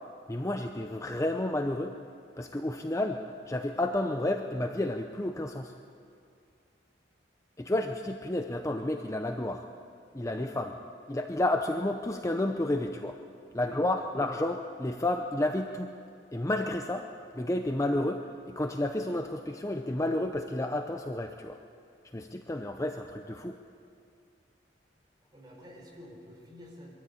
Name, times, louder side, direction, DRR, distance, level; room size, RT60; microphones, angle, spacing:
voice 1, 0.3-1.9 2.4-5.7 7.6-9.6 10.1-10.7 11.1-13.2 13.5-15.9 16.3-17.1 17.3-21.6 22.1-23.6, left 1 dB, 15° left, 5 dB, 0.7 m, -31 dB
voice 2, 13.5-14.2 25.3-26.9, left 1 dB, 25° right, -2 dB, 4.6 m, -49 dB
23.0 x 13.5 x 8.5 m, 2.4 s
head